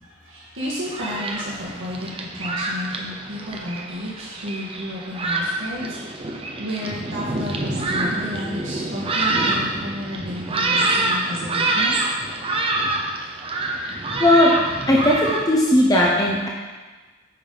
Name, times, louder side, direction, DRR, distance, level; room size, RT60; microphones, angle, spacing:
voice 1, 0.0-6.3 6.6-12.0, equal, 85° right, -6 dB, 1.5 m, -32 dB
Thunderstorm, 0.6-15.4, right 2 dB, 30° right, 0.7 m, -26 dB
voice 2, 13.8-14.5 14.9-16.5, left 1 dB, 20° left, -3 dB, 0.8 m, -17 dB
9.1 x 5.3 x 3.9 m, 1.3 s
head